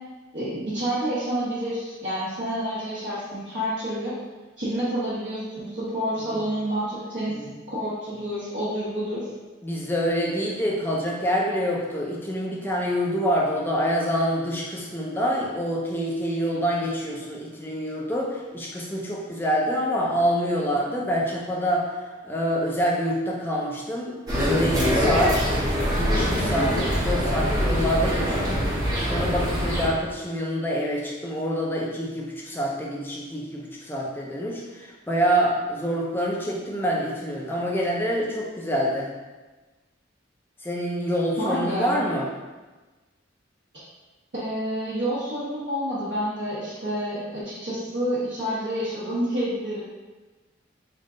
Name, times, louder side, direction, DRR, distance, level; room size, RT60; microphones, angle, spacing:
voice 1, 0.3-4.1 4.6-7.3 7.7-9.3 41.4-42.0 44.3-49.8, equal, 60° right, -14 dB, 1.2 m, -28 dB
voice 2, 9.6-21.9 22.2-25.5 25.9-28.6 29.1-39.1 40.6-42.3, equal, 10° left, -3 dB, 0.5 m, -26 dB
sound 1, 24.3-29.9, equal, 20° right, 0.9 m, -24 dB
3.7 x 2.5 x 3.7 m, 1.2 s
head